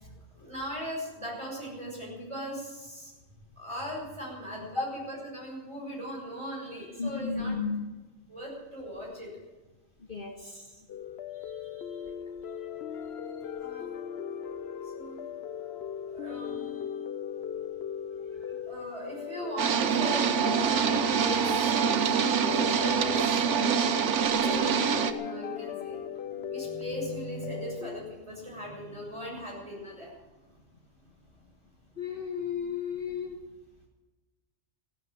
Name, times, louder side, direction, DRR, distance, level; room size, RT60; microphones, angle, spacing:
voice 1, 0.3-3.1 3.6-7.6 8.3-9.3 11.3-12.1 12.9-13.9 14.8-15.2 16.1-16.9 18.5-30.3, equal, 25° right, -3 dB, 7.0 m, -40 dB
voice 2, 7.0-7.8 10.1-10.6 32.0-33.4, left 5 dB, 40° left, 1 dB, 1.8 m, -33 dB
sound 1, 10.9-28.0, left 9 dB, 60° left, 1.0 m, -38 dB
sound 2, 19.6-25.1, right 7 dB, 70° right, 1.2 m, -25 dB
15.5 x 12.0 x 7.4 m, 1.2 s
omnidirectional pair, 1.3 m